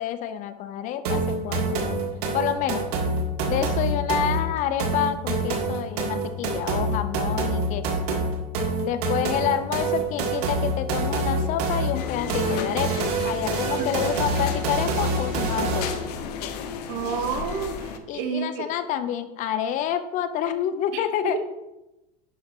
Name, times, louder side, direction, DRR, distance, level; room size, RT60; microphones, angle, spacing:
voice 1, 0.0-2.0 2.3-2.9 3.5-7.9 8.8-12.9 13.2-15.9 18.1-21.4, left 10 dB, 40° left, 11 dB, 0.6 m, -28 dB
sound 1, 1.0-16.1, right 2 dB, 85° right, 1.7 m, -26 dB
sound 2, 11.9-18.0, left 6 dB, 90° left, 0.9 m, -34 dB
voice 2, 16.9-18.7 20.9-21.4, right 7 dB, 65° right, 6 dB, 1.3 m, -30 dB
11.0 x 4.4 x 4.4 m, 0.95 s
supercardioid pair, 145°, 20 cm